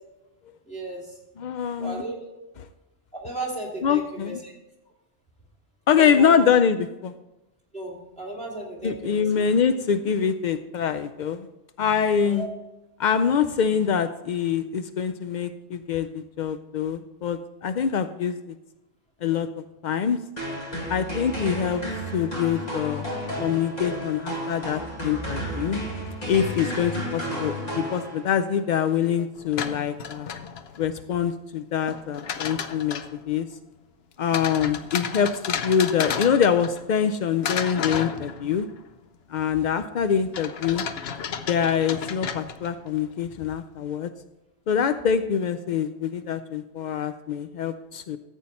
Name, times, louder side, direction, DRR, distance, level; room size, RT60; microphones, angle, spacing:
voice 1, 0.6-1.2 1.8-2.2 3.1-4.5 6.0-6.5 7.7-9.3 12.2-12.5, right 1 dB, 5° left, -4 dB, 2.7 m, -35 dB
voice 2, 1.4-2.0 3.8-4.4 5.9-7.1 8.8-11.5 11.8-12.4 13.0-18.5 19.2-19.5 19.8-20.2 20.9-21.9 22.1-23.1 23.4-25.8 26.3-30.3 30.8-33.5 34.2-38.7 39.3-40.9 41.5-44.1 44.7-48.2, left 7 dB, 75° left, 10 dB, 0.4 m, -24 dB
sound 1, 20.4-28.5, equal, 30° left, 2.4 m, -32 dB
sound 2, 29.4-30.9 31.9-33.2 34.3-37.1 37.4-38.8 40.3-42.9, left 7 dB, 60° left, 0.9 m, -32 dB
13.5 x 8.2 x 4.2 m, 0.99 s
omnidirectional pair, 1.3 m